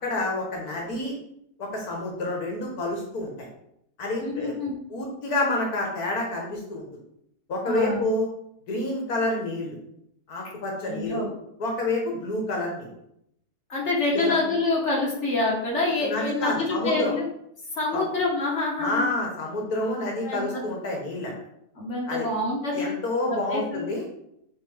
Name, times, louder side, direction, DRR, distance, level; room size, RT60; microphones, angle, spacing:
voice 1, 0.0-1.1 1.6-3.5 4.0-4.5 4.9-6.8 7.5-8.3 8.7-9.8 10.3-11.2 11.6-12.9 14.1-14.3 16.0-17.1 17.9-18.1 18.8-21.3 22.1-22.3 22.7-24.0, left 2 dB, 75° left, -1 dB, 1.8 m, -28 dB
voice 2, 4.2-4.7 7.7-8.0 10.8-11.3 13.7-17.3 17.8-19.1 20.2-20.6 21.8-22.9 23.3-23.8, left 2 dB, 45° left, -3 dB, 2.0 m, -26 dB
8.4 x 3.3 x 3.5 m, 0.76 s
omnidirectional pair, 1.6 m